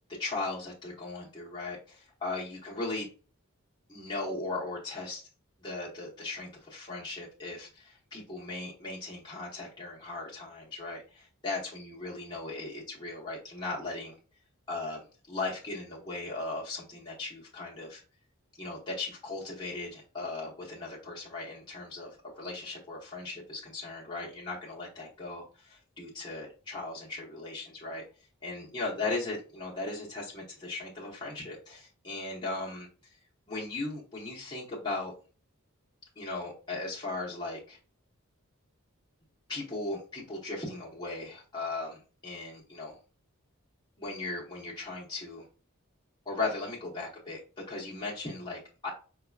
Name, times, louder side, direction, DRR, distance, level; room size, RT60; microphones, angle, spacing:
voice 1, 0.2-3.1 3.9-5.2 5.6-14.2 14.7-18.0 18.6-28.0 28.4-32.9 33.5-35.1 36.2-37.8 39.5-42.0 42.2-43.0 44.0-45.4 46.2-47.4 47.7-48.9, left 3 dB, 20° left, -6 dB, 1.0 m, -37 dB
4.8 x 2.9 x 2.3 m, 0.36 s
head